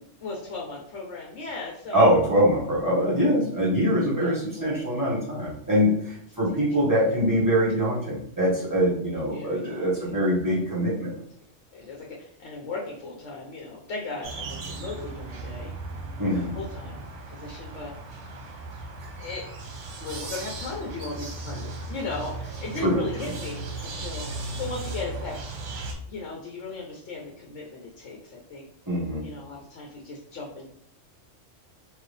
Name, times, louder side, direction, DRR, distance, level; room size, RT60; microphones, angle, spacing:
voice 1, 0.2-2.0 3.6-3.7 4.2-4.6 6.5-7.1 9.3-10.1 11.7-15.7 16.3-17.0 17.3-17.9 19.2-19.5 20.0-25.4 26.1-28.7 29.2-30.7, left 3 dB, 75° left, -1 dB, 1.2 m, -37 dB
voice 2, 1.9-11.1 16.2-16.5 22.8-23.3 28.9-29.2, equal, 15° right, -7 dB, 1.3 m, -23 dB
sound 1, 14.2-25.9, right 2 dB, 75° right, 1.2 m, -37 dB
4.6 x 2.6 x 3.3 m, 0.65 s
omnidirectional pair, 1.3 m